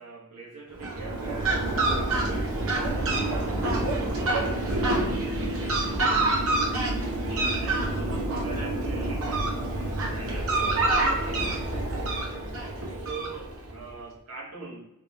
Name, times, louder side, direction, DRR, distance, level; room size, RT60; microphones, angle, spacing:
voice 1, 0.0-6.3 6.8-12.6 13.0-14.8, right 3 dB, 85° right, -3 dB, 1.2 m, -43 dB
Fowl, 0.7-13.7, right 2 dB, 65° right, 0.9 m, -27 dB
3.5 x 3.4 x 3.0 m, 0.88 s
head